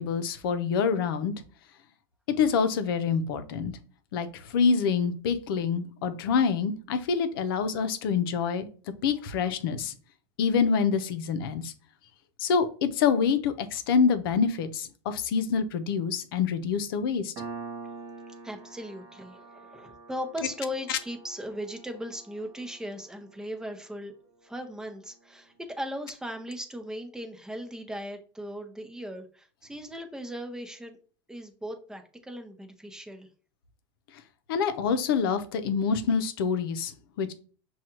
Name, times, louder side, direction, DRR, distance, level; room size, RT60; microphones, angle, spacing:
voice 1, 0.0-1.3 2.4-3.7 4.1-8.7 9.0-9.9 10.4-11.7 12.4-17.3 34.5-37.3, left 6 dB, 75° left, 10 dB, 0.6 m, -26 dB
Piano, 17.4-24.5, right 4 dB, 45° right, 1.1 m, -45 dB
voice 2, 18.4-24.1 24.4-31.0 31.3-33.3, equal, 5° right, 5 dB, 0.6 m, -38 dB
6.1 x 2.3 x 2.9 m, 0.41 s
supercardioid pair, 135°, 12 cm